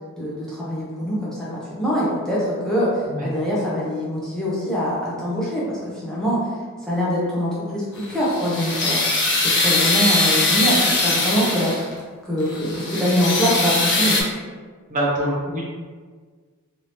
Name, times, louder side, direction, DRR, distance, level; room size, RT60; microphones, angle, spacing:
voice 1, 0.2-2.9 3.2-6.4 6.9-11.9 12.2-14.2, equal, 5° left, -8 dB, 0.6 m, -24 dB
sound 1, 8.0-11.9 12.4-14.2, left 2 dB, 55° left, 0.7 m, -21 dB
voice 2, 14.9-15.6, right 1 dB, 35° right, -4 dB, 0.8 m, -24 dB
3.3 x 2.7 x 2.9 m, 1.5 s
head